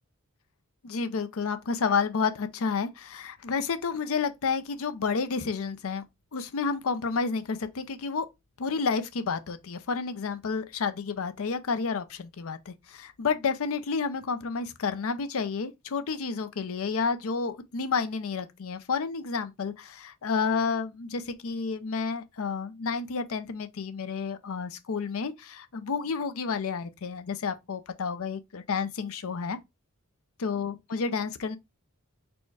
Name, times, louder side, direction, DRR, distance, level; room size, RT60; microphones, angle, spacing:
voice 1, 0.8-6.0 6.3-8.3 8.6-29.6 30.4-31.6, left 5 dB, 65° left, 0.5 m, -30 dB
4.3 x 2.2 x 4.6 m
head